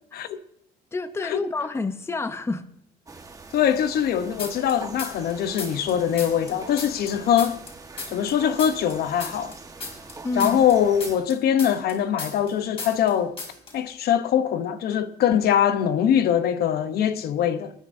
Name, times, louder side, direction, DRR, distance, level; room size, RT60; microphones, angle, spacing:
voice 1, 0.9-2.7 10.2-10.6, left 3 dB, 15° left, 0.7 m, -28 dB
sound 1, 3.1-11.2, right 3 dB, 20° right, 1.3 m, -43 dB
voice 2, 3.5-7.6 8.1-9.5 10.4-13.3 13.7-17.7, left 9 dB, 65° left, 0.8 m, -22 dB
sound 2, 4.4-5.3 5.6-8.3 8.6-12.5 12.8-13.1 13.4-13.7, left 3 dB, 35° left, 4.8 m, -35 dB
26.0 x 9.7 x 2.6 m
cardioid pair, 110°, 17 cm